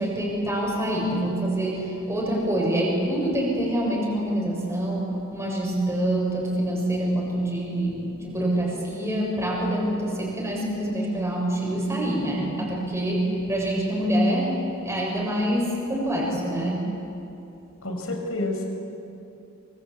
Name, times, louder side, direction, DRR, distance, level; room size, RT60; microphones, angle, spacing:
voice 1, 0.0-16.8, right 1 dB, 15° right, -4 dB, 7.1 m, -26 dB
voice 2, 17.8-18.7, left 2 dB, 70° left, 3 dB, 5.7 m, -29 dB
26.0 x 26.0 x 8.6 m, 2.8 s
head